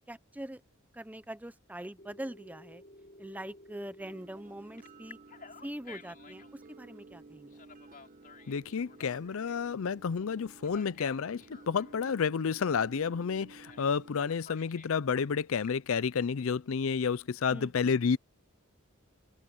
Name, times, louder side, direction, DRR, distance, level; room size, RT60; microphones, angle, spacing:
voice 1, 0.1-0.6 0.9-2.8 3.2-5.2 5.6-7.6 17.5-17.9, right 1 dB, 5° right, 0.7 m, -43 dB
Telephone, 2.0-4.2 4.8-6.5 7.5-9.8 10.6-11.9 13.7-13.9 14.2-15.0 15.4-16.0, left 4 dB, 40° left, 4.4 m, -53 dB
sound 1, 4.0-14.3, right 3 dB, 40° right, 1.6 m, -54 dB
voice 2, 8.5-18.2, left 6 dB, 70° left, 0.5 m, -30 dB
head